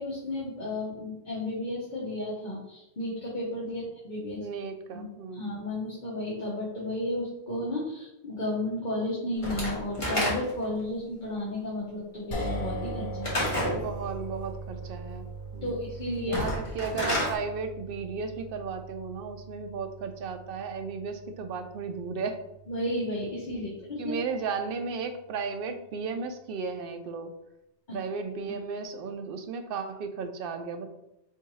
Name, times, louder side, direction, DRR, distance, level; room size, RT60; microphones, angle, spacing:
voice 1, 0.0-4.4 4.9-13.3 15.6-16.4 22.7-24.1 27.9-28.0, left 1 dB, 45° left, -7 dB, 1.2 m, -33 dB
voice 2, 4.4-5.4 13.7-15.8 16.3-22.4 23.5-23.6 24.0-27.3 27.9-30.9, right 5 dB, 65° right, 7 dB, 0.7 m, -35 dB
Slam / Wood, 9.4-10.7 13.2-13.8 16.2-17.4, left 1 dB, 30° left, 1.3 m, -29 dB
sound 1, 12.3-24.6, right 2 dB, 75° left, 1.3 m, -41 dB
4.5 x 3.5 x 3.0 m, 0.89 s
omnidirectional pair, 1.1 m